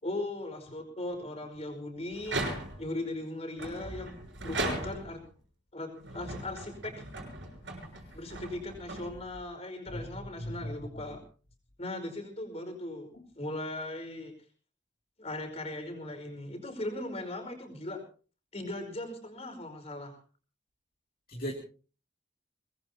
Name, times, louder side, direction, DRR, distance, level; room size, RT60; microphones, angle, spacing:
voice 1, 0.0-4.2 4.4-5.2 5.7-7.1 8.1-11.2 11.8-13.1 13.4-14.3 15.2-18.0 18.5-20.2, left 1 dB, 35° left, 4 dB, 5.1 m, -38 dB
sound 1, 2.2-3.0 3.6-5.3 5.9-9.5, right 2 dB, 70° right, 6.3 m, -38 dB
voice 2, 10.4-11.0 21.3-21.5, equal, 50° left, -1 dB, 2.6 m, -37 dB
24.0 x 20.0 x 2.9 m, 0.38 s
head